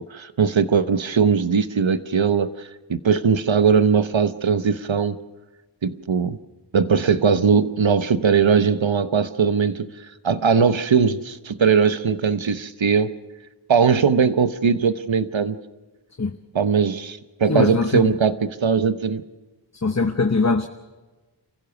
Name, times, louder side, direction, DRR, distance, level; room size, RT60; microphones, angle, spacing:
voice 1, 0.0-5.2 5.8-6.4 6.7-13.1 13.7-15.6 16.5-19.2, right 6 dB, 85° right, 12 dB, 0.9 m, -20 dB
voice 2, 17.5-18.1 19.8-20.7, left 4 dB, 35° left, 8 dB, 1.1 m, -21 dB
28.5 x 15.5 x 7.0 m, 1.2 s
wide cardioid pair, 50°, 45 cm